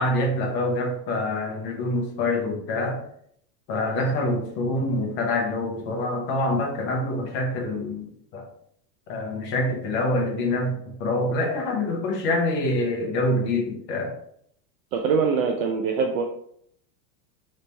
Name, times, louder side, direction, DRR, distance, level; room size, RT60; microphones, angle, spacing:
voice 1, 0.0-3.0 3.7-8.4 9.1-14.1, left 1 dB, 25° left, 0 dB, 0.6 m, -26 dB
voice 2, 14.9-16.2, right 5 dB, 55° right, 2 dB, 0.5 m, -23 dB
3.9 x 3.2 x 3.3 m, 0.67 s
supercardioid pair, 170°, 50 cm